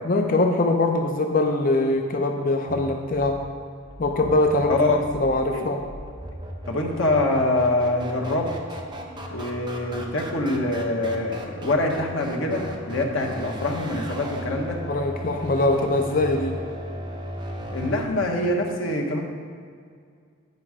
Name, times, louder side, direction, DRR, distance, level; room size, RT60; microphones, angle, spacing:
voice 1, 0.1-3.4 4.0-5.8 14.8-16.6, left 2 dB, 45° left, 4 dB, 0.5 m, -22 dB
sound 1, 2.7-18.1, equal, 25° right, 0.8 m, -36 dB
voice 2, 4.7-5.7 6.7-8.5 9.3-14.8 17.7-19.3, left 2 dB, 80° left, 0 dB, 1.2 m, -25 dB
sound 2, 7.0-14.4, equal, 40° right, 1.8 m, -45 dB
9.8 x 5.4 x 4.9 m, 2.1 s
head